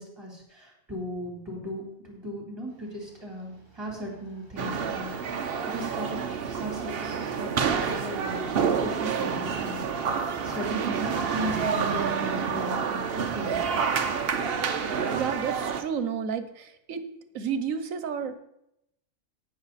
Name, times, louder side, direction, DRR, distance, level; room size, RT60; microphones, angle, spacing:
voice 1, 0.0-6.2 6.5-9.9 10.2-13.6, equal, 20° right, -1 dB, 3.7 m, -37 dB
sound 1, 2.7-12.7, right 6 dB, 35° right, 2.4 m, -43 dB
sound 2, 4.6-15.8, right 6 dB, 50° right, 1.0 m, -28 dB
voice 2, 15.1-17.0 17.3-18.3, right 7 dB, 75° right, 11 dB, 1.3 m, -31 dB
18.0 x 6.4 x 4.2 m, 0.82 s
omnidirectional pair, 1.4 m